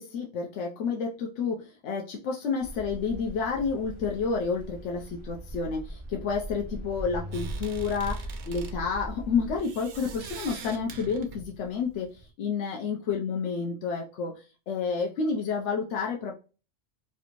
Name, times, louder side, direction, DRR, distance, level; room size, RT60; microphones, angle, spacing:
voice 1, 0.0-12.1 12.4-16.3, left 5 dB, 80° left, 0 dB, 0.9 m, -30 dB
sound 1, 2.6-9.6, right 1 dB, 35° left, 0.6 m, -39 dB
sound 2, 7.3-12.3, right 5 dB, 80° right, 0.9 m, -44 dB
3.3 x 2.5 x 2.9 m, 0.33 s
omnidirectional pair, 1.2 m